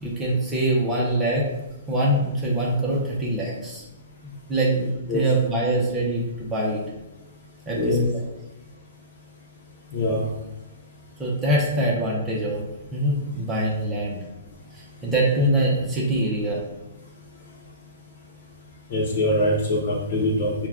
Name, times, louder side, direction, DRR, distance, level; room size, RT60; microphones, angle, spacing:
voice 1, 0.0-1.5 1.9-3.8 4.2-6.8 7.7-8.0 11.2-12.6 12.9-14.2 14.7-16.6, right 1 dB, 15° right, -4 dB, 0.8 m, -24 dB
voice 2, 7.7-8.1 9.9-10.3 18.9-20.5, left 1 dB, 55° left, -4 dB, 0.9 m, -23 dB
4.4 x 2.3 x 3.6 m, 0.99 s
hypercardioid pair, 135°, 0 cm